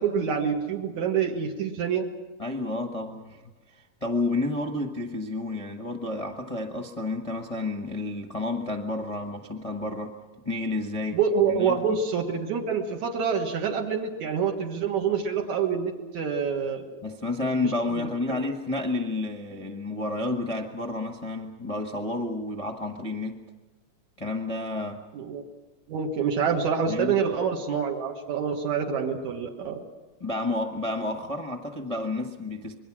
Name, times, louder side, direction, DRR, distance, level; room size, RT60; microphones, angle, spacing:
voice 1, 0.0-2.1 11.1-16.9 18.0-18.4 25.1-25.4 25.9-29.8, right 6 dB, 80° right, 2 dB, 3.0 m, -27 dB
voice 2, 2.4-3.4 3.7-10.1 10.4-11.2 11.5-12.0 17.0-23.4 24.2-25.0 26.9-27.2 30.2-32.7, left 2 dB, 35° left, 1 dB, 0.5 m, -30 dB
26.5 x 21.5 x 6.2 m, 1.2 s
omnidirectional pair, 3.3 m